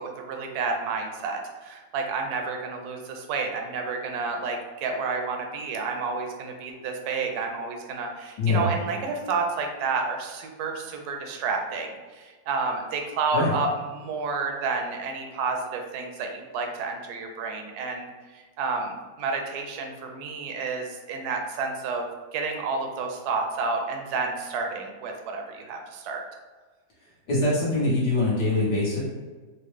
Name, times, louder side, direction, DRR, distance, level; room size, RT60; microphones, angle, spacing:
voice 1, 0.0-18.1 18.3-26.2, right 4 dB, 75° right, 3 dB, 1.1 m, -30 dB
voice 2, 8.4-8.7 13.3-13.6 27.3-29.0, left 2 dB, 75° left, -7 dB, 1.6 m, -23 dB
4.2 x 2.0 x 3.2 m, 1.4 s
omnidirectional pair, 1.8 m